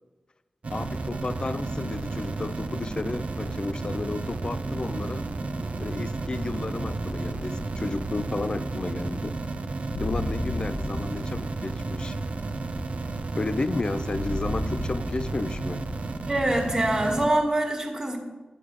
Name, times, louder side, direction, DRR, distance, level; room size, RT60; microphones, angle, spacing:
sound 1, 0.6-17.3, right 3 dB, 60° right, 0.6 m, -32 dB
voice 1, 0.7-5.3 5.8-9.4 10.0-12.2 13.3-15.9, left 3 dB, 40° left, 13 dB, 0.4 m, -32 dB
sound 2, 2.9-9.2, right 1 dB, 15° right, 0.8 m, -42 dB
sound 3, 6.7-16.2, left 2 dB, 65° left, 1.2 m, -37 dB
voice 2, 16.2-18.2, right 1 dB, 30° right, -2 dB, 1.8 m, -24 dB
10.0 x 4.9 x 7.3 m, 1.2 s
wide cardioid pair, 75°, 2 cm